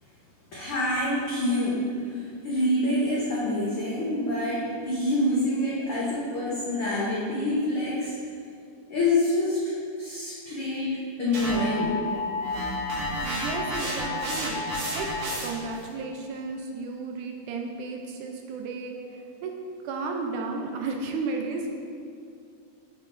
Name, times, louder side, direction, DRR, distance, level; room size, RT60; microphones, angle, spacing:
voice 1, 0.5-8.2 8.9-12.0, left 1 dB, 80° left, -8 dB, 1.2 m, -27 dB
sound 1, 11.3-15.7, left 1 dB, 60° right, 2.1 m, -30 dB
voice 2, 13.2-14.6 15.0-15.1 15.4-19.0 19.4-19.6 19.8-21.7, right 4 dB, 80° right, 2 dB, 2.0 m, -33 dB
7.1 x 6.3 x 2.5 m, 2.3 s
omnidirectional pair, 3.8 m